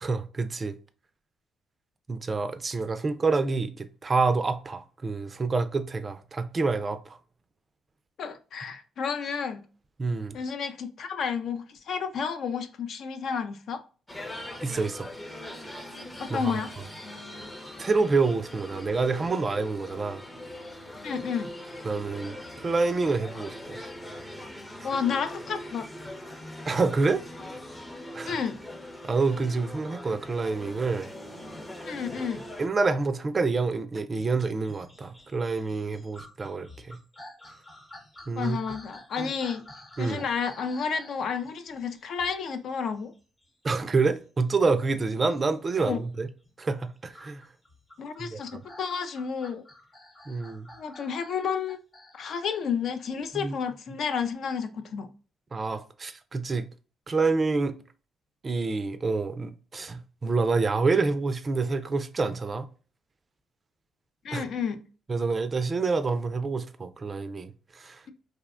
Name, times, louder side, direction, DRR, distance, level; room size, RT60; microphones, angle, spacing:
voice 1, 0.0-0.8 2.1-7.2 10.0-10.4 14.6-15.1 16.3-16.6 17.8-20.2 21.8-23.8 26.7-27.2 28.1-28.4 29.0-31.1 32.6-37.0 38.3-38.6 39.2-39.3 40.0-40.2 43.6-46.3 46.6-47.5 48.2-48.4 50.3-50.7 53.3-53.5 55.5-56.7 57.1-57.7 58.4-62.6 64.3-64.4 65.1-68.0, right 4 dB, 35° right, 0.3 m, -27 dB
voice 2, 8.2-9.6 10.3-13.8 16.2-16.7 21.0-21.5 24.8-25.9 28.3-28.6 31.8-32.4 38.4-39.6 40.0-43.1 45.8-46.0 48.0-49.6 50.8-51.8 52.1-55.1 64.2-64.8, left 6 dB, 65° left, 0.4 m, -31 dB
sound 1, 14.1-32.7, left 1 dB, 15° left, 0.6 m, -41 dB
sound 2, 34.1-46.5 47.1-52.7 53.2-53.3, left 1 dB, 35° left, 0.9 m, -50 dB
2.7 x 2.1 x 2.3 m
cardioid pair, 90°, 0 cm